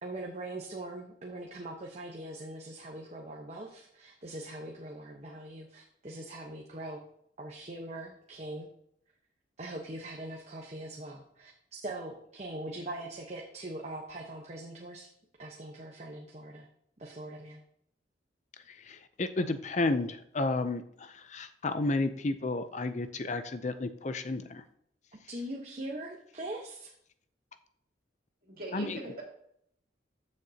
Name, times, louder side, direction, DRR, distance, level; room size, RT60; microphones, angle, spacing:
voice 1, 0.0-7.0 7.4-8.7 9.6-15.1 15.4-16.7 17.0-17.6 25.3-26.9, right 1 dB, 40° right, 0 dB, 1.0 m, -42 dB
voice 2, 18.9-20.8 21.3-24.6 28.7-29.0, left 2 dB, 40° left, 10 dB, 0.5 m, -31 dB
voice 3, 28.4-29.2, right 2 dB, 55° right, -2 dB, 3.0 m, -41 dB
14.5 x 6.6 x 2.8 m, 0.71 s
head